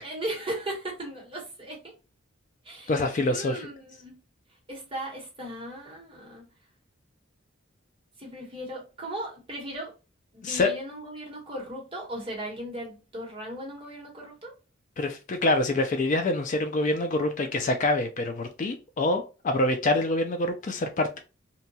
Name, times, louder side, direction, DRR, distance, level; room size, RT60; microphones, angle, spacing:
voice 1, 0.0-1.9 2.6-3.0 3.3-4.2 4.7-6.4 8.2-9.9 10.3-14.5, right 1 dB, 25° right, 1.0 m, -37 dB
voice 2, 2.9-3.7 10.4-10.7 15.0-21.2, left 2 dB, 40° left, 0.3 m, -26 dB
2.7 x 2.2 x 2.7 m
head